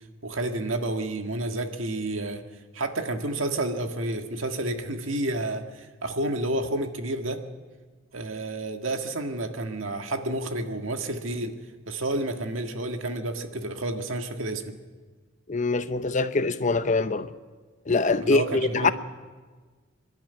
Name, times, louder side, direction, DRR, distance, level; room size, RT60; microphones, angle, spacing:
voice 1, 0.2-2.4 2.7-7.4 8.1-11.6 11.9-14.7 18.2-18.9, right 2 dB, 75° right, 1.8 m, -30 dB
voice 2, 15.5-17.3 17.9-18.9, left 3 dB, 35° left, 0.7 m, -24 dB
26.0 x 12.0 x 9.4 m
head